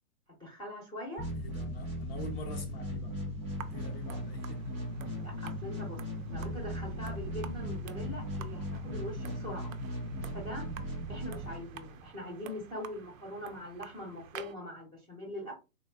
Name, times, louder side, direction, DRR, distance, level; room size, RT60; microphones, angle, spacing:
voice 1, 0.3-1.3 5.2-6.0 6.3-9.7 10.3-10.7 11.1-15.5, left 1 dB, 10° left, 0.8 m, -42 dB
sound 1, 1.2-12.1, equal, 10° right, 0.3 m, -38 dB
voice 2, 1.4-3.1 3.5-4.7, left 3 dB, 45° left, 0.7 m, -46 dB
sound 2, 3.5-14.6, right 8 dB, 65° right, 0.5 m, -51 dB
3.5 x 2.3 x 2.3 m
hypercardioid pair, 135°, 44 cm